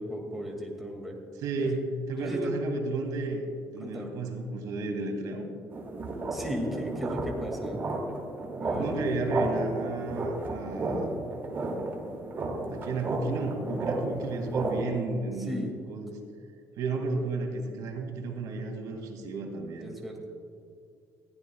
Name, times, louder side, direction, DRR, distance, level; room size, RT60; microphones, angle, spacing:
voice 1, 0.0-1.2 1.6-1.7 2.2-2.4 3.8-4.1 6.3-7.8 8.6-9.0 15.5-15.7 19.8-20.3, equal, ahead, -1 dB, 2.1 m, -36 dB
voice 2, 1.3-1.8 2.1-3.4 3.7-5.5 8.7-11.2 12.7-16.2 16.8-19.9, right 3 dB, 80° right, 3 dB, 2.2 m, -32 dB
sound 1, 5.7-14.8, right 2 dB, 35° right, 2.4 m, -33 dB
20.5 x 15.0 x 2.3 m, 2.3 s
cardioid pair, 150°, 6 cm